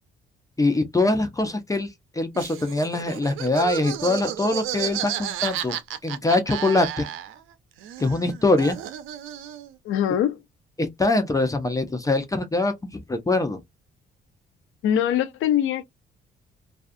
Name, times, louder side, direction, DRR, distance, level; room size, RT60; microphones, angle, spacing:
voice 1, 0.6-1.9 2.2-5.8 6.0-7.1 8.0-8.8 10.8-13.6, left 2 dB, 15° left, 0.6 m, -23 dB
Laughter, 2.3-7.5 7.8-9.7, right 11 dB, 90° right, 0.5 m, -32 dB
voice 2, 9.8-10.4 14.8-15.8, left 10 dB, 80° left, 0.5 m, -22 dB
2.4 x 2.3 x 2.5 m
cardioid pair, 90°, 20 cm